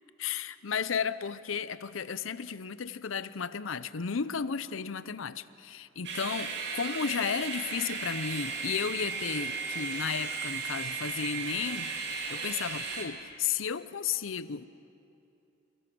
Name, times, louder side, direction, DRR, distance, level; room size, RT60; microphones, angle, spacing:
voice 1, 0.2-14.6, left 6 dB, 90° left, 15 dB, 0.6 m, -34 dB
sound 1, 6.0-13.0, right 4 dB, 60° right, 2.7 m, -35 dB
28.5 x 17.0 x 6.2 m, 2.7 s
head